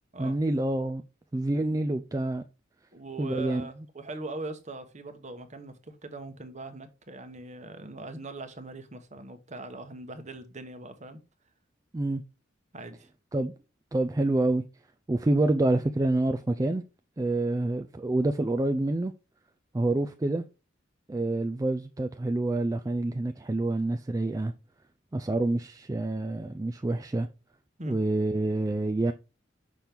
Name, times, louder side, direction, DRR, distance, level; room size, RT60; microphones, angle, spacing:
voice 1, 0.2-1.0 1.3-2.4 3.2-3.7 11.9-12.2 13.3-13.5 13.9-14.6 15.1-16.8 17.2-19.1 19.7-20.4 21.1-24.5 25.1-27.3 27.9-29.1, right 2 dB, 15° right, 0.3 m, -27 dB
voice 2, 2.9-11.2 12.7-13.1 27.8-28.0, right 2 dB, 35° right, 1.0 m, -41 dB
6.1 x 5.8 x 3.4 m
head